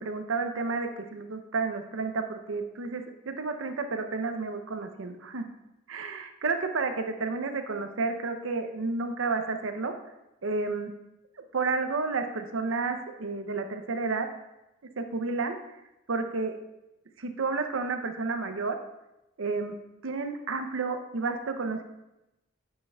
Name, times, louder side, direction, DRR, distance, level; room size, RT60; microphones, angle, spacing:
voice 1, 0.0-5.5 5.9-9.9 10.4-10.9 11.5-14.3 15.0-15.6 16.1-16.6 17.2-18.8 19.4-19.8 20.0-21.8, right 4 dB, 65° right, 7 dB, 0.6 m, -31 dB
9.4 x 5.5 x 2.3 m, 0.94 s
head